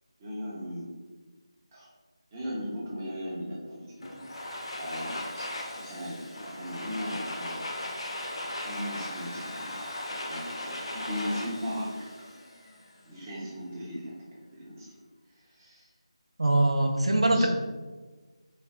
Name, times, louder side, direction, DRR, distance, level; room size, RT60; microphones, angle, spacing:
voice 1, 0.2-0.9 1.7-1.9 2.3-4.4 4.8-5.5 5.8-7.6 8.6-9.7 10.0-11.9 13.0-14.9 15.6-15.9 17.3-17.5, equal, 20° right, -7 dB, 0.9 m, -37 dB
Domestic sounds home sounds, 4.0-12.9, left 1 dB, 60° left, 0.6 m, -38 dB
voice 2, 16.4-17.5, right 2 dB, 75° right, 3 dB, 0.5 m, -22 dB
3.2 x 2.2 x 3.6 m, 1.3 s
figure-of-eight pair, 165°, 3 cm